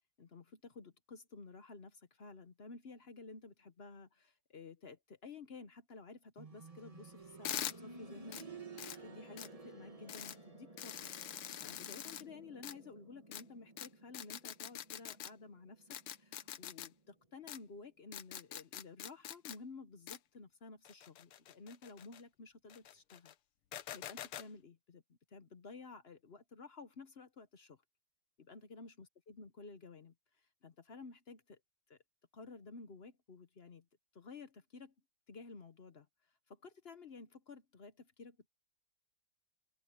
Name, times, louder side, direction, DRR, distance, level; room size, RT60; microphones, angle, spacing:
voice 1, 0.2-7.5 7.8-8.4 9.0-11.1 11.6-23.3 23.9-27.8 28.4-31.6 31.9-32.0 32.3-33.9 34.1-34.9 35.3-38.5, left 4 dB, 50° left, 0.7 m, -53 dB
sound 1, 6.4-17.1 17.4-17.5 18.4-18.5, right 3 dB, 20° right, 1.2 m, -54 dB
sound 2, 7.4-7.7 8.3-8.4 8.8-9.0 9.4-9.5 10.1-10.4 10.8-12.2 12.6-12.7 13.3-13.4 13.8-13.9 14.1-15.3 15.9-16.9 17.5-17.6 18.1-19.6 20.1-20.2 20.8-22.2 22.7-23.3 23.7-24.4, left 11 dB, 85° left, 1.8 m, -44 dB
open air
omnidirectional pair, 2.3 m